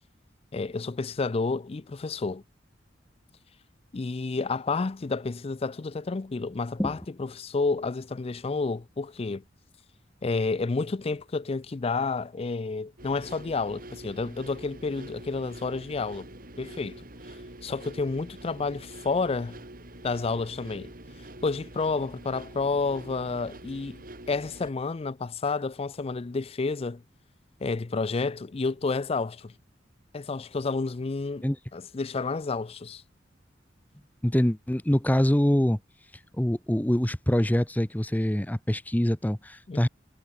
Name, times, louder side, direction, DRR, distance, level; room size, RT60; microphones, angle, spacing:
voice 1, 0.5-2.4 3.9-9.4 10.2-16.3 16.6-17.0 17.6-19.6 20.0-20.9 21.4-24.0 24.3-27.0 27.6-29.5 30.1-31.5 31.7-33.0 39.7-39.9, left 4 dB, 30° left, 0.4 m, -30 dB
sound 1, 13.0-24.7, right 1 dB, 50° right, 6.8 m, -45 dB
voice 2, 34.2-35.8 36.3-39.9, equal, 10° left, 0.9 m, -24 dB
head